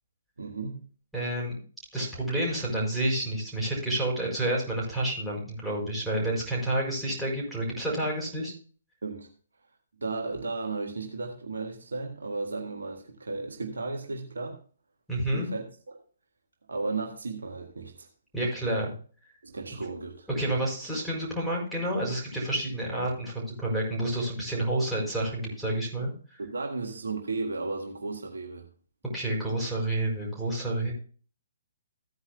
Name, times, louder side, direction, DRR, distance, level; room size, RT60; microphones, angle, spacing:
voice 1, 0.4-0.8 9.0-9.3 10.0-14.6 15.3-16.0 16.7-18.1 19.4-20.3 26.4-28.7, right 3 dB, 65° right, 1.7 m, -34 dB
voice 2, 1.1-1.6 1.9-8.5 15.1-15.5 18.3-18.9 20.3-26.4 29.1-30.9, right 1 dB, ahead, 5.0 m, -29 dB
15.5 x 9.6 x 2.3 m
figure-of-eight pair, 130°, 0 cm